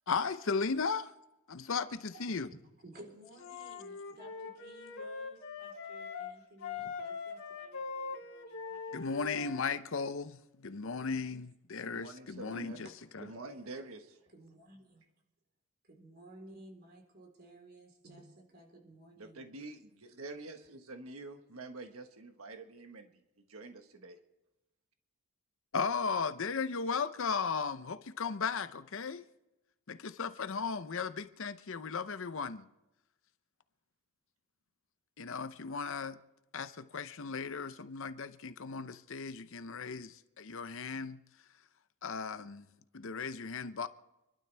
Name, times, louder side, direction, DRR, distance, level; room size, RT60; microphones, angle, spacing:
voice 1, 0.1-1.1 1.5-2.5 8.9-12.9 13.1-13.3 25.7-29.2 29.9-32.7 35.2-36.2 36.5-41.2 42.0-42.7 42.9-43.9, left 5 dB, 65° left, 0.8 m, -36 dB
voice 2, 2.8-8.8 9.1-9.2 11.0-11.3 12.5-13.4 14.3-15.0 15.8-19.5, right 1 dB, 50° right, 4.1 m, -56 dB
Wind instrument woodwind instrument, 3.4-6.3 6.6-9.8, left 5 dB, 85° left, 2.7 m, -42 dB
voice 3, 11.9-12.8 13.2-14.1 19.2-23.1 23.5-24.2, right 2 dB, 80° right, 1.5 m, -47 dB
27.5 x 12.0 x 3.5 m
head